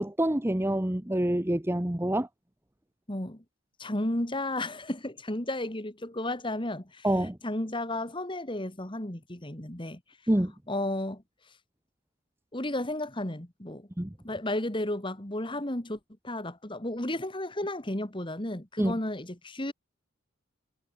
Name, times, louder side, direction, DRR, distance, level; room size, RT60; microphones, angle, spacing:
voice 1, 0.0-2.3 7.0-7.4 10.3-10.5 14.0-14.1 18.8-18.9, right 1 dB, 10° right, 0.7 m, -26 dB
voice 2, 3.1-3.4 3.8-7.1 7.4-10.0 10.7-11.2 12.5-13.9 14.2-16.0 16.2-19.7, left 1 dB, 25° left, 2.0 m, -33 dB
head